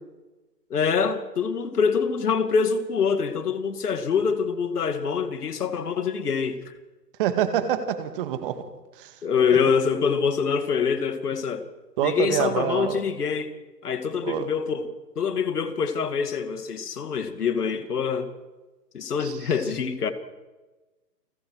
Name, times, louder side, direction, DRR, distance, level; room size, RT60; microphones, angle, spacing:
voice 1, 0.7-6.7 9.2-11.7 12.0-13.5 13.8-14.9 15.2-18.3 18.9-20.1, left 6 dB, 65° left, 2.4 m, -25 dB
voice 2, 7.2-8.6 9.0-9.1 9.5-9.6 12.0-13.0 14.2-14.5 19.2-19.4, right 9 dB, 30° right, 1.9 m, -26 dB
29.5 x 19.5 x 4.8 m
hypercardioid pair, 145°, 50 cm